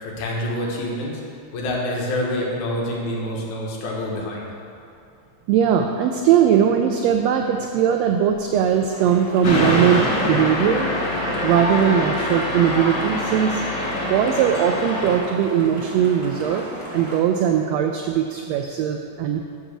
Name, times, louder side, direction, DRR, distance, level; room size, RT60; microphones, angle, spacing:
voice 1, 0.0-1.2 1.5-4.6, left 1 dB, 80° left, -3 dB, 2.7 m, -27 dB
voice 2, 5.5-10.9 11.4-13.6 14.0-16.7 16.9-19.4, right 9 dB, 80° right, 4 dB, 1.6 m, -20 dB
sound 1, 8.9-17.2, equal, 30° right, 0.5 m, -35 dB
sound 2, 9.4-15.2, left 1 dB, 50° left, 1.6 m, -24 dB
10.5 x 4.1 x 7.3 m, 2.6 s
omnidirectional pair, 3.4 m